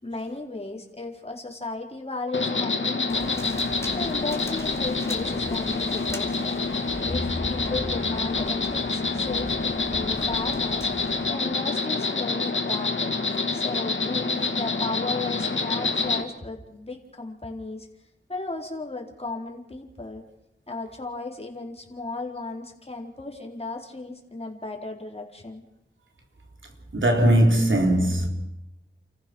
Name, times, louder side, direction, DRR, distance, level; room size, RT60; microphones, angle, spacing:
voice 1, 0.0-3.5 4.0-6.5 7.0-10.9 11.3-13.1 13.5-17.9 18.3-20.2 20.7-25.6, left 3 dB, 30° left, 4.2 m, -35 dB
Insect, 2.3-16.2, left 4 dB, 75° left, 2.1 m, -27 dB
sound 1, 3.1-11.3, left 1 dB, 15° left, 3.6 m, -39 dB
voice 2, 26.9-28.3, right 1 dB, 75° right, 4.0 m, -19 dB
30.0 x 14.5 x 6.3 m
cardioid pair, 50°, 20 cm